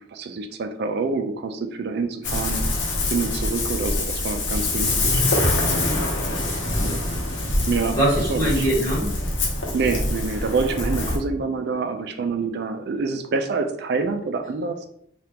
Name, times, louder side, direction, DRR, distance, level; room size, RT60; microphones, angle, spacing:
voice 1, 0.1-2.6 3.1-5.2 6.8-7.0 7.7-8.0 8.3-8.6 9.7-14.9, right 4 dB, 60° right, 7 dB, 0.4 m, -26 dB
Ocean, 2.2-11.2, left 2 dB, 90° left, 0.8 m, -24 dB
voice 2, 6.1-6.9 8.0-9.1, right 1 dB, 20° left, -7 dB, 1.5 m, -24 dB
3.5 x 2.4 x 2.8 m, 0.69 s
head